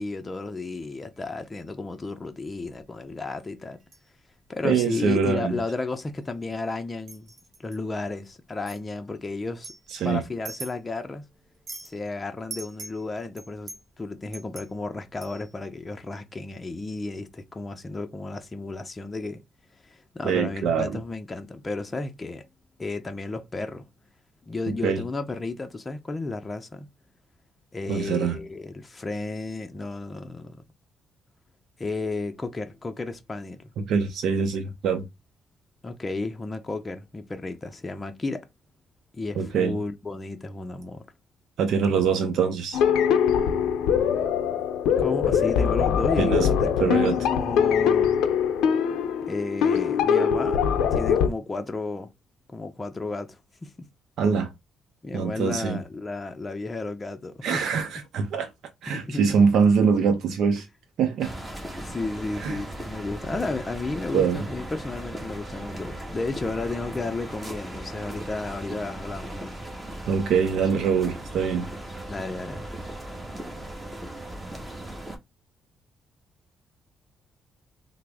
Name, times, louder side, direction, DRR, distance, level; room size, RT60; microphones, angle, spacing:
voice 1, 0.0-3.8 4.5-7.3 7.6-9.7 10.0-11.3 11.8-19.4 19.8-22.4 22.8-23.9 24.4-26.9 27.7-30.6 31.8-33.7 35.8-38.4 39.1-41.0 45.0-48.2 49.3-52.1 52.5-53.7 55.0-57.8 58.9-59.5 61.8-69.5 72.1-72.7, left 3 dB, 25° left, 0.5 m, -33 dB
sound 1, 1.2-1.5 2.6-2.8 3.4-4.1 4.5-4.6 5.1-5.4 5.6-6.6 7.0-7.8 8.7-8.8 9.5-11.1 11.4-12.0 12.5-15.6, right 3 dB, 45° right, 1.0 m, -43 dB
voice 2, 4.6-5.6 9.9-10.2 20.2-21.0 24.8-25.0 27.9-28.4 33.8-35.1 39.4-39.8 41.6-42.8 46.2-46.5 46.8-47.2 54.2-54.5 55.1-55.8 57.4-58.5 58.8-60.7 61.0-61.3 62.4-62.6 64.1-64.4 70.1-71.7, right 6 dB, 75° right, 0.5 m, -23 dB
sound 2, 42.7-51.3, left 7 dB, 90° left, 0.5 m, -22 dB
sound 3, 61.2-75.2, right 1 dB, 15° right, 1.1 m, -37 dB
3.4 x 2.0 x 3.4 m
cardioid pair, 90°, 0 cm